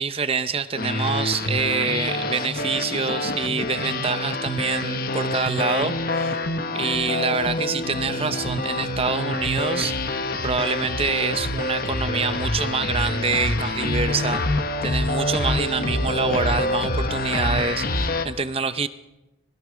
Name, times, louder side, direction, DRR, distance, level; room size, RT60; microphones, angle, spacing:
voice 1, 0.0-6.4 6.7-14.5 14.8-18.9, right 5 dB, 30° right, 12 dB, 0.7 m, -26 dB
sound 1, 0.8-18.3, left 2 dB, 50° left, 1.3 m, -26 dB
26.0 x 20.5 x 5.1 m, 0.98 s
head